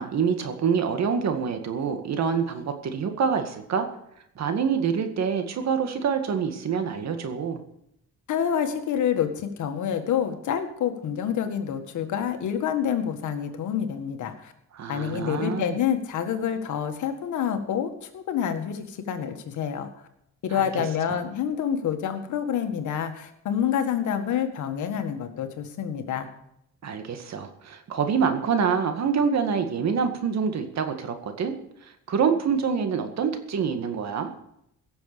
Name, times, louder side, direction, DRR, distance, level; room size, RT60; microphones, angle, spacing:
voice 1, 0.0-3.9 4.4-7.6 14.7-15.6 20.5-20.7 21.1-21.2 26.8-31.5 31.8-34.3, right 6 dB, 60° right, 7 dB, 2.0 m, -26 dB
voice 2, 8.3-14.5 14.9-19.9 20.4-26.3, left 8 dB, 75° left, 7 dB, 1.8 m, -27 dB
16.5 x 7.1 x 6.9 m, 0.78 s
cardioid pair, 90°, 30 cm